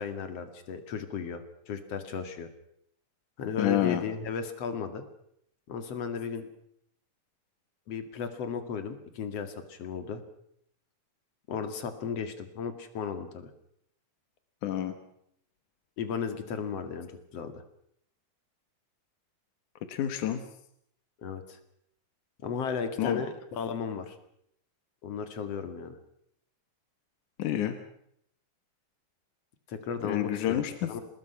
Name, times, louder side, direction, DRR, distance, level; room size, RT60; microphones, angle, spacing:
voice 1, 0.0-2.5 3.4-5.0 5.7-6.5 7.9-10.2 11.5-13.5 16.0-17.6 21.2-21.6 22.4-24.2 25.0-26.0 29.7-31.0, left 6 dB, 55° left, 9 dB, 3.1 m, -35 dB
voice 2, 3.6-4.0 14.6-14.9 19.9-20.4 23.0-23.2 27.4-27.8 30.0-30.9, left 11 dB, 80° left, 9 dB, 2.9 m, -28 dB
27.0 x 20.0 x 5.8 m, 0.71 s
omnidirectional pair, 3.5 m